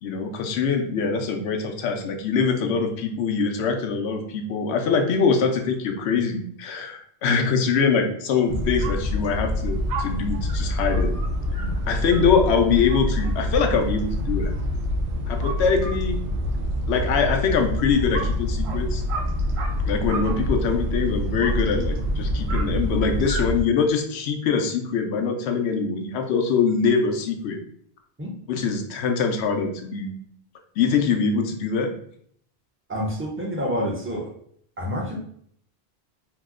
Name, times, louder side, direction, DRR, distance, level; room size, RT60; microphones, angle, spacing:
voice 1, 0.0-11.1 11.5-11.6 11.9-14.5 15.3-16.2 16.9-19.0 19.9-27.6 28.5-30.1 30.8-31.9, left 5 dB, 90° left, 4 dB, 0.8 m, -23 dB
sound 1, 8.5-23.6, left 1 dB, 90° right, 0.8 m, -26 dB
voice 2, 32.9-34.3 34.8-35.2, equal, 15° right, -1 dB, 0.5 m, -28 dB
2.9 x 2.0 x 3.5 m, 0.64 s
omnidirectional pair, 1.1 m